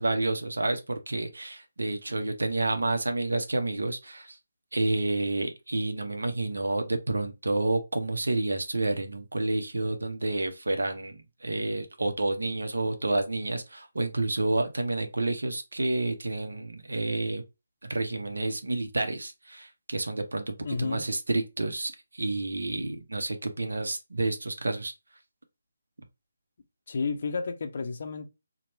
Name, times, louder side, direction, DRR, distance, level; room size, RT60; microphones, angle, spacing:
voice 1, 0.0-4.4 4.7-17.4 17.8-24.9, right 2 dB, 70° right, 0.6 m, -29 dB
voice 2, 20.6-21.1 26.9-28.3, left 4 dB, 50° left, 0.5 m, -31 dB
2.9 x 2.1 x 3.1 m
figure-of-eight pair, 150°, 0 cm